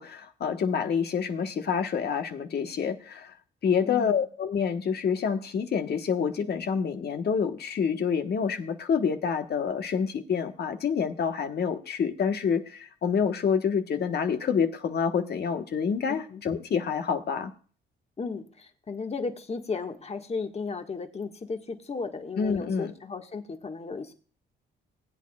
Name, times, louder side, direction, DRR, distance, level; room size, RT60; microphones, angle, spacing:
voice 1, 0.0-3.3 3.6-17.5 22.4-22.9, left 6 dB, 55° left, 6 dB, 1.3 m, -27 dB
voice 2, 3.8-4.2 16.1-16.4 18.2-24.1, left 4 dB, 30° left, 6 dB, 1.7 m, -35 dB
20.5 x 8.6 x 2.4 m, 0.41 s
cardioid pair, 90°, 20 cm